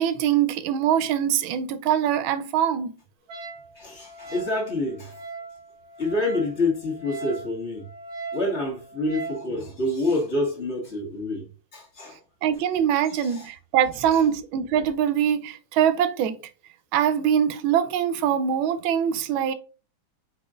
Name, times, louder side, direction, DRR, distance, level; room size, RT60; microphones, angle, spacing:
voice 1, 0.0-2.9 12.4-16.4 16.9-19.5, right 9 dB, 85° right, 1.4 m, -23 dB
Wind instrument woodwind instrument, 3.3-9.5, right 4 dB, 55° right, 1.4 m, -39 dB
voice 2, 3.8-5.2 6.0-7.8 8.3-11.5 11.7-12.2 13.1-13.5, left 2 dB, 35° left, 1.7 m, -27 dB
4.8 x 3.9 x 2.4 m
omnidirectional pair, 2.2 m